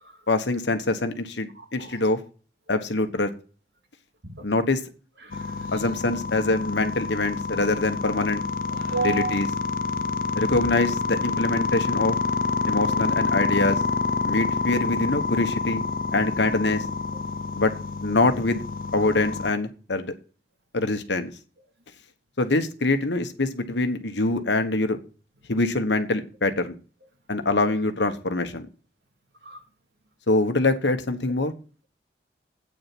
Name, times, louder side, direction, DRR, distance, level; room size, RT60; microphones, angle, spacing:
voice 1, 0.3-2.2 2.7-3.3 4.4-4.8 5.7-8.4 9.0-9.5 10.3-12.2 12.6-13.8 14.2-15.8 16.1-16.8 17.5-17.7 18.0-18.7 18.9-20.1 20.7-21.3 22.4-25.0 25.5-26.8 27.3-28.7 30.3-31.5, left 2 dB, 80° left, 1.3 m, -24 dB
voice 2, 1.6-2.0 4.2-4.4 5.2-5.7 8.7-9.4 29.4-29.6, right 3 dB, 75° right, 2.4 m, -32 dB
sound 1, 5.3-19.5, left 4 dB, 50° left, 0.5 m, -28 dB
8.7 x 8.7 x 6.1 m
head